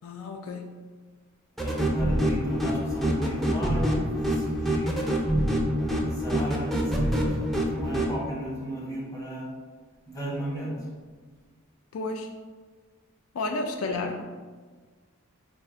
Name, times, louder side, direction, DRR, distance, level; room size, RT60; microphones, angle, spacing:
voice 1, 0.0-0.8 11.9-12.3 13.3-14.2, left 3 dB, 80° left, 4 dB, 0.3 m, -32 dB
voice 2, 1.6-5.4 5.8-9.5 10.1-10.9 13.9-14.0, right 1 dB, 15° left, -5 dB, 1.1 m, -36 dB
sound 1, 1.6-8.1, equal, ahead, 0.4 m, -26 dB
4.3 x 2.4 x 3.7 m, 1.5 s
head